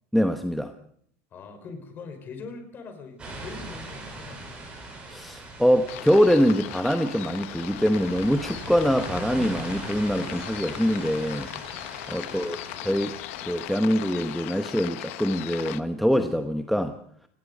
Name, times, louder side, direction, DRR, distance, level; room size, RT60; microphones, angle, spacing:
voice 1, 0.1-0.7 5.1-11.5 12.1-13.2 13.5-17.0, equal, ahead, 7 dB, 1.0 m, -24 dB
voice 2, 1.3-4.7 12.2-12.9, left 4 dB, 30° left, 8 dB, 4.9 m, -43 dB
sound 1, 3.2-13.8, right 2 dB, 15° right, 7.9 m, -41 dB
sound 2, 5.9-15.8, left 16 dB, 90° left, 1.3 m, -38 dB
29.5 x 18.5 x 5.3 m, 0.63 s
cardioid pair, 165°, 7 cm